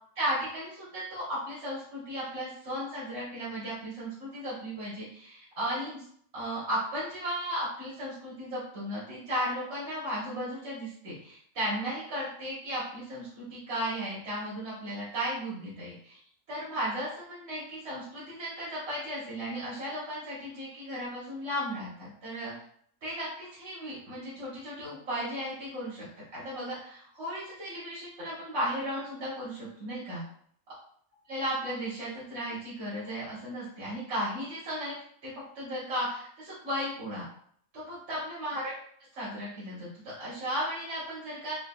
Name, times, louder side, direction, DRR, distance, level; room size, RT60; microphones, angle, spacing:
voice 1, 0.2-6.0 6.3-16.2 16.5-22.5 23.0-26.1 26.3-30.3 31.3-34.9 35.2-37.2 37.7-38.7 39.1-41.6, equal, 50° right, -9 dB, 1.5 m, -35 dB
5.0 x 2.4 x 2.2 m, 0.63 s
omnidirectional pair, 1.5 m